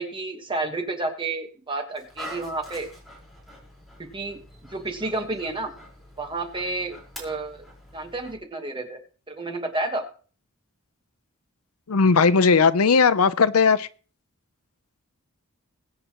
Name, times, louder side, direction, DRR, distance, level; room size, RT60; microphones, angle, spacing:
voice 1, 0.0-2.9 4.0-4.4 4.7-5.7 6.2-7.6 7.9-9.0 9.3-10.0, right 2 dB, 20° right, 1.4 m, -30 dB
Dog, 1.9-8.4, equal, ahead, 4.5 m, -45 dB
voice 2, 11.9-13.9, left 5 dB, 75° left, 0.7 m, -18 dB
22.0 x 8.0 x 3.0 m
head